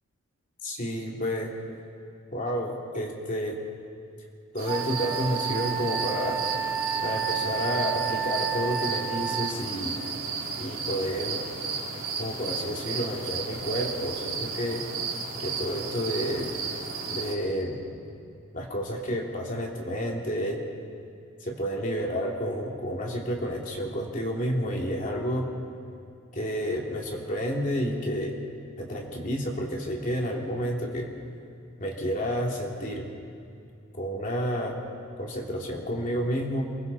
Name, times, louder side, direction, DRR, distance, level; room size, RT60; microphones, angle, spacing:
voice 1, 0.6-1.5 2.3-3.6 4.5-6.4 7.0-10.0 10.6-11.4 12.2-14.8 15.4-16.5 17.1-17.8 18.5-20.6 21.4-25.5 26.3-28.3 28.8-31.1 31.8-33.1 33.9-34.7 35.2-36.7, equal, 40° left, -2 dB, 2.9 m, -30 dB
sound 1, 4.6-17.3, right 5 dB, 70° right, 3.1 m, -34 dB
Wind instrument woodwind instrument, 4.7-9.5, right 8 dB, 20° right, 2.2 m, -31 dB
29.5 x 22.5 x 4.2 m, 2.4 s
head